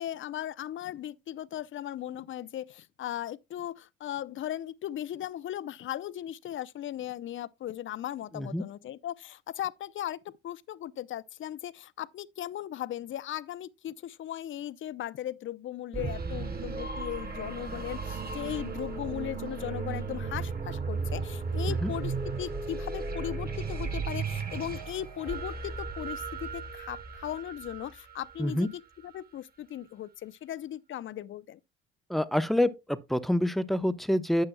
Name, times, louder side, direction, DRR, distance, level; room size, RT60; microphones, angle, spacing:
voice 1, 0.0-31.6, left 11 dB, 45° left, 0.6 m, -37 dB
sound 1, 15.9-28.6, right 4 dB, 35° right, 2.8 m, -35 dB
voice 2, 32.1-34.4, left 1 dB, ahead, 0.9 m, -27 dB
12.0 x 8.7 x 2.2 m
hypercardioid pair, 55°, 29 cm